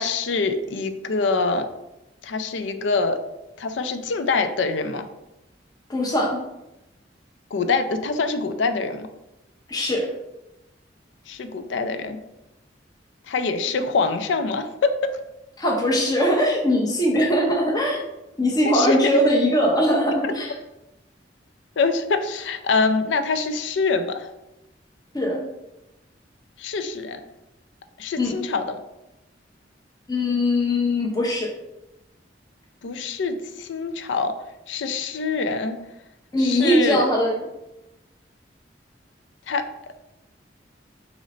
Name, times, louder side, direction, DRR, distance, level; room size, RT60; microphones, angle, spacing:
voice 1, 0.0-1.7 2.2-3.2 3.6-5.1 7.5-9.1 11.3-12.2 13.3-14.9 17.1-17.3 18.6-19.1 21.8-24.3 26.6-27.2 28.0-28.8 32.8-34.3 34.7-35.8 36.4-37.0 39.5-39.6, left 4 dB, 90° left, 9 dB, 0.5 m, -24 dB
voice 2, 5.9-6.4 9.7-10.1 15.6-18.0 18.4-20.5 25.1-25.4 28.2-28.4 30.1-31.5 36.3-37.4, equal, 20° left, -2 dB, 0.6 m, -21 dB
3.9 x 3.1 x 4.0 m, 0.94 s
head